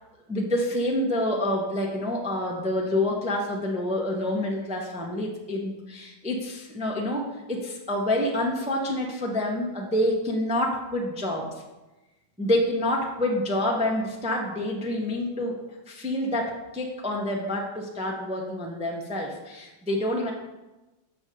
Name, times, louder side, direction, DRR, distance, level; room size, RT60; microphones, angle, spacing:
voice 1, 0.3-11.5 12.4-15.6 15.9-20.3, left 1 dB, 5° right, -1 dB, 0.5 m, -27 dB
6.2 x 5.0 x 6.7 m, 1.1 s
omnidirectional pair, 2.1 m